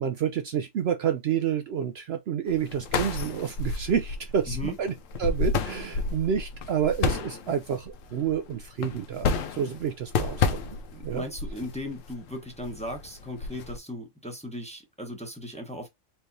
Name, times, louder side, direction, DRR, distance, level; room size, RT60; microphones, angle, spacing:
voice 1, 0.0-4.9 5.2-11.2, right 8 dB, 65° right, 0.7 m, -29 dB
sound 1, 2.5-13.8, left 4 dB, 90° left, 1.1 m, -31 dB
voice 2, 4.5-4.8 11.0-15.9, left 1 dB, 5° left, 0.9 m, -37 dB
4.4 x 3.1 x 2.7 m
omnidirectional pair, 1.3 m